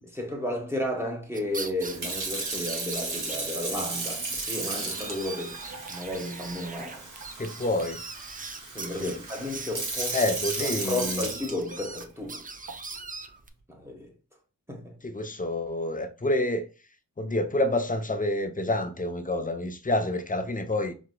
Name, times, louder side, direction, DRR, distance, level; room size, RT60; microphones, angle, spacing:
voice 1, 0.0-5.6 5.9-7.0 8.7-10.2 10.6-12.4 13.7-14.1 14.7-14.9, left 1 dB, 5° right, 1.2 m, -33 dB
sound 1, 1.3-3.4 3.7-3.8 4.0-4.1 4.4-13.5, right 4 dB, 25° right, 0.4 m, -41 dB
Sink (filling or washing) / Fill (with liquid), 1.8-12.0 12.7-13.0, right 3 dB, 60° right, 1.3 m, -35 dB
voice 2, 7.4-8.0 9.0-9.2 10.1-11.3 15.0-16.6 17.2-20.9, left 1 dB, 25° left, 0.6 m, -28 dB
4.8 x 3.5 x 2.2 m
wide cardioid pair, 70°, 35 cm